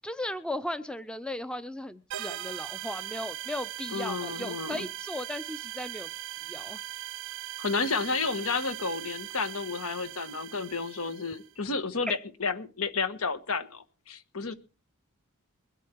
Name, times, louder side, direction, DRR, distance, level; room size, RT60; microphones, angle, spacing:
voice 1, 0.0-6.1 6.5-6.8 12.1-12.2, left 1 dB, 5° left, 0.6 m, -36 dB
sound 1, 2.1-11.5, right 14 dB, 60° right, 0.6 m, -40 dB
voice 2, 3.9-4.9 7.6-14.5, left 4 dB, 75° left, 1.5 m, -31 dB
22.5 x 8.3 x 4.6 m
head